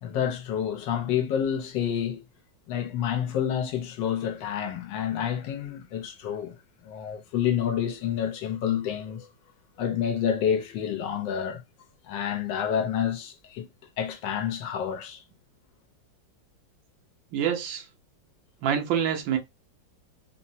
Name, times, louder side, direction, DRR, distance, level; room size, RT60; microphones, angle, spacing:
voice 1, 0.0-2.2 2.7-6.6 6.8-9.3 9.8-11.6 12.0-13.7 14.0-15.2, left 9 dB, 80° left, 1.4 m, -28 dB
voice 2, 17.3-17.8 18.6-19.4, right 8 dB, 85° right, 1.5 m, -26 dB
3.7 x 2.0 x 2.6 m
omnidirectional pair, 2.0 m